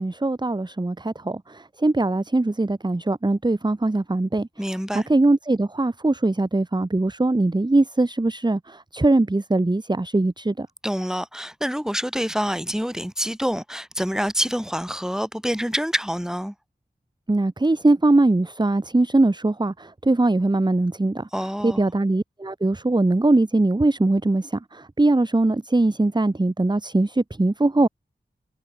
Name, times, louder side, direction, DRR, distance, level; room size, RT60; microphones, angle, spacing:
voice 1, 0.0-4.5 4.9-10.7 17.3-21.3 21.6-27.9, right 2 dB, 25° right, 1.0 m, -21 dB
voice 2, 4.6-5.1 10.8-16.5 21.3-21.9, equal, 5° right, 6.1 m, -26 dB
wide cardioid pair, 50°, 18 cm